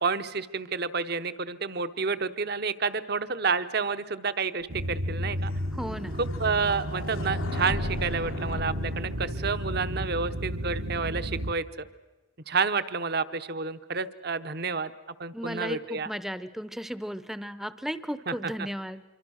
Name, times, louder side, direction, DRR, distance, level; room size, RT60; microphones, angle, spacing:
voice 1, 0.0-5.5 6.2-11.9 12.5-14.9 15.2-16.1 18.3-18.5, right 4 dB, 50° right, 12 dB, 0.9 m, -30 dB
sound 1, 4.7-11.5, equal, 75° right, 1.4 m, -32 dB
sound 2, 4.8-9.7, left 2 dB, 80° left, 1.3 m, -39 dB
voice 2, 5.7-6.2 15.3-19.0, equal, ahead, 13 dB, 0.7 m, -35 dB
26.5 x 24.0 x 6.4 m, 1.2 s
head